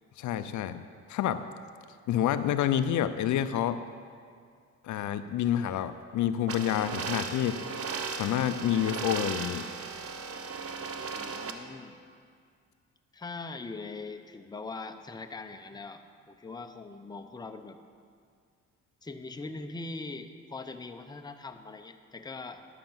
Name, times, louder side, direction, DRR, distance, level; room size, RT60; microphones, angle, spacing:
voice 1, 0.2-0.8 1.1-1.4 2.1-3.8 4.8-7.6 8.1-9.7, left 10 dB, 75° left, 11 dB, 0.5 m, -28 dB
sound 1, 6.5-11.5, right 5 dB, 50° right, 0.9 m, -36 dB
voice 2, 11.1-12.0 13.1-17.8 19.0-22.7, left 3 dB, 15° left, 6 dB, 0.7 m, -41 dB
12.0 x 5.9 x 7.3 m, 2.1 s
cardioid pair, 90°, 30 cm